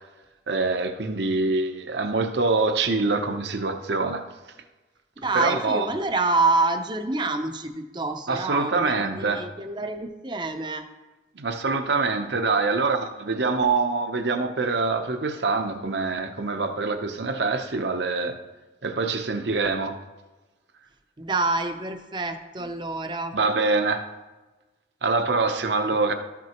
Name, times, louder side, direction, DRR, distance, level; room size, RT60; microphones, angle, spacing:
voice 1, 0.5-4.2 5.3-5.9 8.3-9.4 11.4-18.3 18.8-19.9 23.3-24.0 25.0-26.1, right 3 dB, 70° right, 7 dB, 0.7 m, -25 dB
voice 2, 5.2-10.8 21.2-23.3, right 3 dB, 25° right, 7 dB, 0.6 m, -27 dB
13.5 x 6.0 x 3.0 m, 1.2 s
head